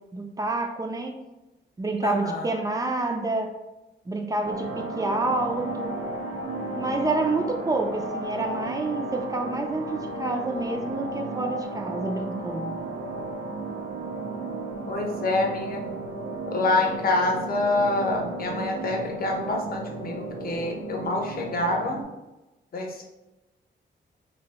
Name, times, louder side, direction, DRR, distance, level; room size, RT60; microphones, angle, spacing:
voice 1, 0.1-1.1 1.8-3.5 4.1-5.9 6.7-12.7, right 2 dB, 20° right, 4 dB, 0.4 m, -28 dB
voice 2, 2.0-2.5 14.9-15.9 16.5-22.0 22.7-23.0, left 2 dB, 50° left, 1 dB, 0.7 m, -26 dB
sound 1, 4.4-22.0, right 2 dB, 75° right, 0.7 m, -34 dB
2.8 x 2.6 x 4.2 m, 1.0 s
wide cardioid pair, 150°, 20 cm